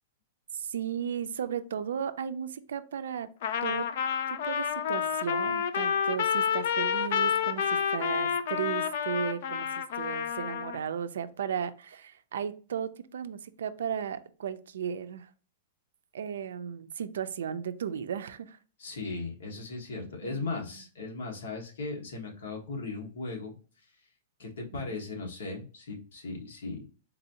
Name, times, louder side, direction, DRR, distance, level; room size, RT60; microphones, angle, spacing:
voice 1, 0.5-3.3 3.6-3.9 4.4-15.3 16.1-18.6 20.2-20.8 24.7-25.0, right 8 dB, 80° right, 12 dB, 0.4 m, -35 dB
Trumpet, 3.4-10.8, left 8 dB, 45° left, 0.3 m, -29 dB
voice 2, 18.8-23.6 24.4-26.9, left 3 dB, 70° left, 0 dB, 1.3 m, -37 dB
4.0 x 2.6 x 2.8 m, 0.38 s
supercardioid pair, 175°, 0 cm